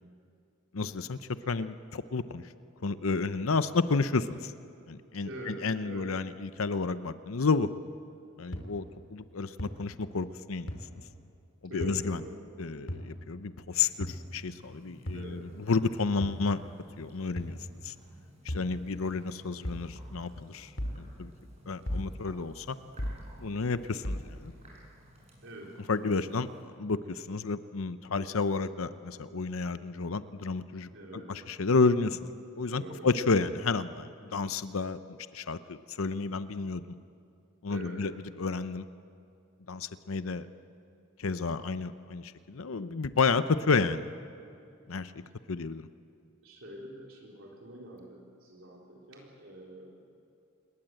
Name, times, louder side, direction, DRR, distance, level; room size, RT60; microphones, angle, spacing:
voice 1, 0.7-1.2 1.5-2.4 2.8-4.5 4.9-7.7 8.4-8.9 9.1-10.7 11.7-12.2 12.6-16.6 17.0-17.6 17.8-17.9 18.5-20.7 21.0-21.3 21.7-22.8 23.4-24.5 25.9-35.0 35.3-36.8 37.6-38.8 39.7-40.5 41.2-44.1 44.9-45.2 45.5-45.9, left 4 dB, 80° left, 13 dB, 0.7 m, -31 dB
voice 2, 5.2-6.1 11.7-12.5 15.1-15.5 25.4-25.7 30.9-31.5 32.7-33.1 37.7-38.0 46.4-50.0, right 1 dB, 65° right, -1 dB, 4.3 m, -45 dB
sound 1, 8.5-8.6 9.6-9.7 10.7-10.8 11.8-12.0 12.9-13.1 14.0-14.2 15.1-15.3 16.2-16.4 17.4-17.6 18.5-18.7 19.6-19.9 20.8-21.0 21.9-22.1 23.0-23.2 24.0-24.3, equal, 60° left, 3.0 m, -34 dB
sound 2, 13.7-26.6, equal, 30° right, 6.9 m, -56 dB
27.5 x 21.0 x 7.9 m, 2.5 s
head